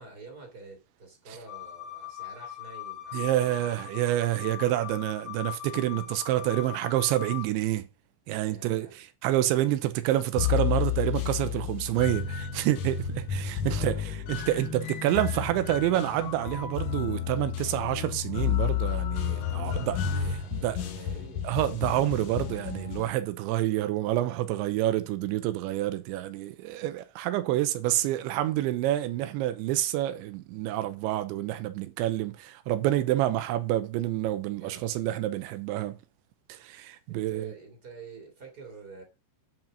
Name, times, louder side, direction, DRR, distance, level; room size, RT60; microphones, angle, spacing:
voice 1, 0.0-3.7 5.0-5.4 8.4-8.9 13.7-14.3 19.2-21.5 27.9-28.3 32.8-33.2 34.6-35.6 37.1-39.0, right 3 dB, 25° right, 2.9 m, -48 dB
sound 1, 1.5-7.4, left 12 dB, 40° left, 1.7 m, -40 dB
voice 2, 3.1-7.9 8.3-20.0 20.5-20.8 21.4-36.0 36.5-37.5, right 14 dB, 90° right, 3.1 m, -28 dB
sound 2, 10.4-23.1, left 10 dB, 75° left, 1.8 m, -31 dB
9.1 x 5.8 x 6.6 m
omnidirectional pair, 5.3 m